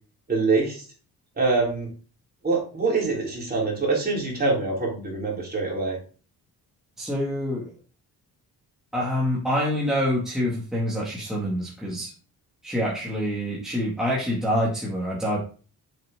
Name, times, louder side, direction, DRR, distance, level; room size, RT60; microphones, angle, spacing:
voice 1, 0.3-0.8 1.4-1.9 2.4-6.0, right 3 dB, 25° right, -3 dB, 3.9 m, -24 dB
voice 2, 7.0-7.7 8.9-12.1 12.6-15.4, equal, ahead, -6 dB, 2.2 m, -26 dB
8.4 x 7.5 x 3.7 m, 0.38 s
wide cardioid pair, 170°, 39 cm